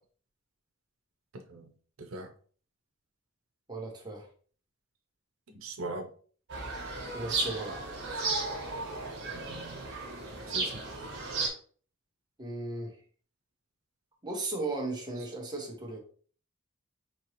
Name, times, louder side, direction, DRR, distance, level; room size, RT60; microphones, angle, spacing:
voice 1, 1.3-1.7 2.0-2.3 5.5-6.1 8.1-8.2 9.3-9.9 10.5-10.8, right 2 dB, 90° right, 5 dB, 0.7 m, -41 dB
voice 2, 3.7-4.3 7.1-7.8 12.4-12.9 14.2-16.0, right 2 dB, 20° right, -1 dB, 1.0 m, -36 dB
sound 1, 6.5-11.5, right 3 dB, 60° right, 1.3 m, -34 dB
4.3 x 2.9 x 3.1 m, 0.44 s
head